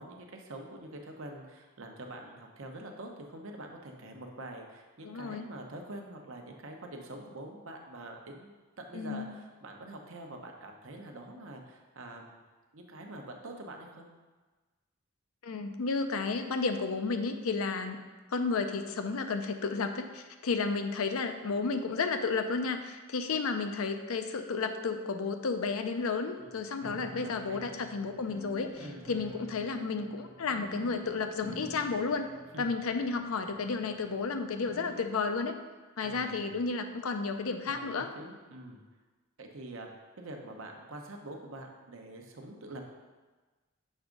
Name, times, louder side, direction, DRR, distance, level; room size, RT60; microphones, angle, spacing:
voice 1, 0.0-12.4 12.7-14.1 26.4-26.5 27.2-27.8 28.8-29.0 32.5-32.7 36.0-36.5 37.7-38.8 39.4-39.9 40.2-42.8, right 1 dB, 65° right, 2 dB, 0.8 m, -45 dB
voice 2, 5.0-5.4 8.9-9.3 15.4-18.0 18.3-32.3 32.6-35.5 36.0-38.1, left 4 dB, 70° left, 7 dB, 0.5 m, -32 dB
sound 1, 26.8-35.2, equal, 15° right, 0.6 m, -49 dB
6.4 x 3.5 x 5.1 m, 1.3 s
head